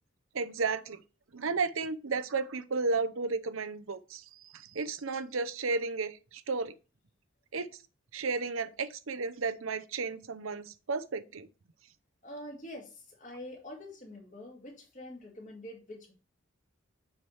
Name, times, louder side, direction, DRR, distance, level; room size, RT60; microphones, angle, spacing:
voice 1, 0.3-1.0 1.3-6.7 7.5-7.7 8.1-11.5, right 4 dB, 80° right, 0.8 m, -33 dB
voice 2, 12.2-16.1, left 1 dB, 35° left, 2.4 m, -45 dB
9.8 x 4.7 x 3.3 m
head